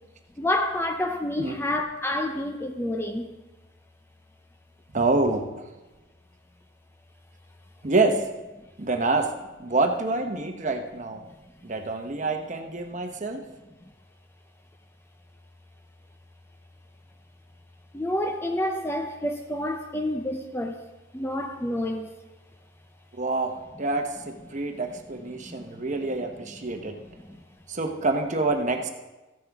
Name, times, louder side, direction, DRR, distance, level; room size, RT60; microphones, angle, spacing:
voice 1, 0.4-3.4 17.9-20.8 21.1-22.1 24.5-24.6 25.5-25.6, left 1 dB, 10° left, 0.5 m, -28 dB
voice 2, 4.9-5.6 7.8-8.2 8.8-9.3 9.6-11.2 11.6-13.4 23.2-27.0 27.7-28.9, right 3 dB, 40° right, 0.9 m, -27 dB
15.0 x 9.9 x 3.5 m
head